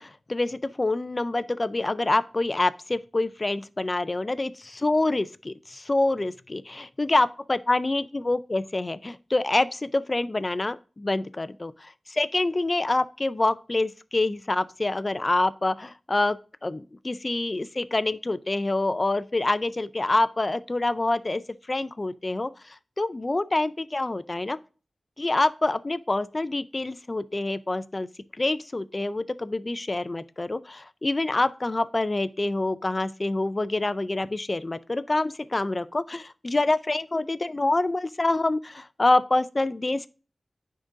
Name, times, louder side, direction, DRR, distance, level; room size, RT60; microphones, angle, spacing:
voice 1, 0.0-16.4 16.6-21.4 21.7-24.6 25.2-28.1 28.4-40.1, left 2 dB, 35° left, 0.4 m, -26 dB
9.8 x 3.8 x 2.6 m
wide cardioid pair, 60°, 0 cm